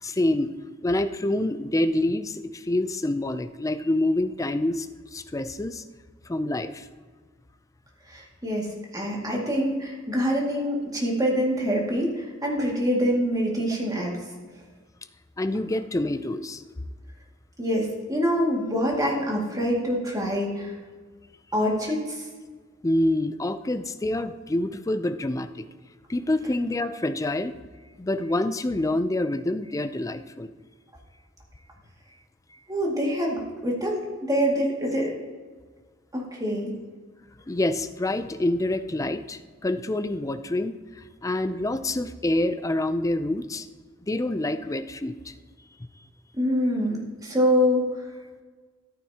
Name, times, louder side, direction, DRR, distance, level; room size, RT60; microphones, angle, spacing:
voice 1, 0.0-0.5 0.8-5.8 6.3-6.9 15.4-16.6 22.8-25.7 26.1-27.6 28.0-30.5 37.5-43.7 44.0-45.3, left 1 dB, 15° left, 10 dB, 0.4 m, -27 dB
voice 2, 8.1-8.7 8.9-14.2 17.6-20.7 21.5-22.2 32.7-35.1 36.1-36.7 46.3-47.8, equal, 20° right, -2 dB, 2.1 m, -25 dB
14.0 x 9.0 x 2.9 m, 1.5 s
head